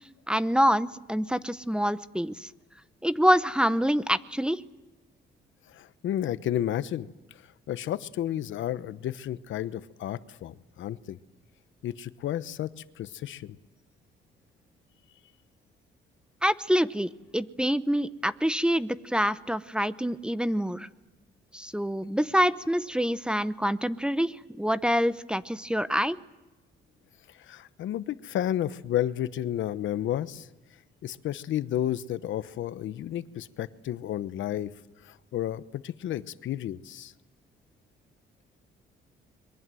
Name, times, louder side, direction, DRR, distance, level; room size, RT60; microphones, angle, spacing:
voice 1, 0.3-2.5 3.0-4.6 16.4-20.9 21.5-26.2, equal, 5° right, 14 dB, 0.9 m, -26 dB
voice 2, 5.7-11.2 11.8-12.7 13.0-13.6 27.3-30.5 31.0-34.7 35.0-37.1, left 11 dB, 75° left, 14 dB, 1.0 m, -32 dB
26.5 x 22.5 x 7.8 m, 1.1 s
cardioid pair, 90°, 20 cm